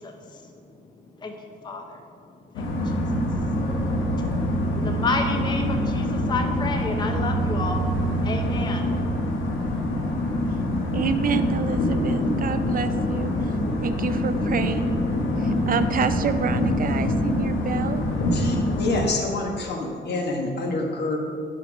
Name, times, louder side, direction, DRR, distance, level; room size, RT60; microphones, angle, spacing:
voice 1, 0.0-9.6, left 3 dB, 20° left, 4 dB, 0.5 m, -33 dB
sound 1, 2.5-19.1, left 1 dB, 75° left, 1.1 m, -25 dB
voice 2, 10.9-15.0 15.4-18.1, right 7 dB, 45° right, 10 dB, 0.4 m, -28 dB
voice 3, 18.3-21.2, left 2 dB, 55° left, 1 dB, 1.3 m, -27 dB
6.6 x 5.1 x 5.2 m, 2.4 s
cardioid pair, 90°, 20 cm